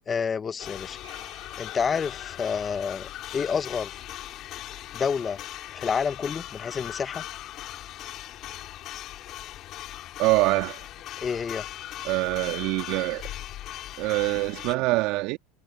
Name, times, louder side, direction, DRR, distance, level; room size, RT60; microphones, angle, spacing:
voice 1, 0.1-1.0 1.6-4.0 4.9-5.4 5.7-7.2 11.2-11.6, left 6 dB, 25° left, 1.2 m, -29 dB
sound 1, 0.6-14.7, left 13 dB, 50° left, 4.3 m, -39 dB
Marimba xylophone, 1.0-2.8, right 10 dB, 85° right, 5.4 m, -56 dB
voice 2, 10.2-10.8 12.0-13.2 14.0-15.4, right 21 dB, 60° right, 2.2 m, -24 dB
hypercardioid pair, 90°, 0 cm